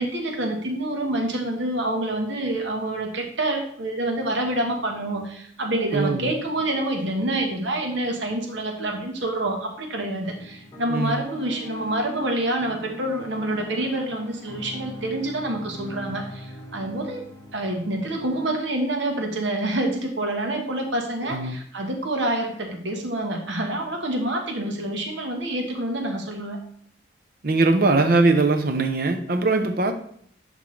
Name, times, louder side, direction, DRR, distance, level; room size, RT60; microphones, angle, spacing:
voice 1, 0.0-17.2 17.5-26.6, right 1 dB, 80° right, 3 dB, 1.2 m, -27 dB
voice 2, 5.9-6.3 10.9-11.2 21.2-21.5 27.4-29.9, right 3 dB, 50° right, 7 dB, 0.7 m, -21 dB
sound 1, 10.2-18.6, equal, 15° left, 1.3 m, -40 dB
10.5 x 3.7 x 3.3 m, 0.65 s
head